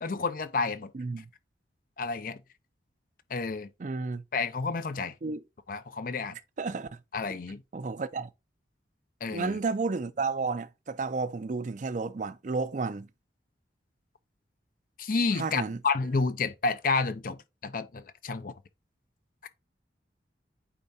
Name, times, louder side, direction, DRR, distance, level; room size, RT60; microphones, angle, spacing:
voice 1, 0.0-0.9 2.0-2.4 3.3-3.7 4.3-5.1 5.7-6.4 7.1-7.6 9.2-9.6 15.0-18.5, left 4 dB, 50° left, 0.5 m, -30 dB
voice 2, 0.9-1.3 3.8-4.2 5.2-5.4 6.6-6.9 7.7-8.3 9.3-13.1 15.3-15.8, right 4 dB, 45° right, 0.4 m, -32 dB
8.5 x 4.5 x 2.6 m
head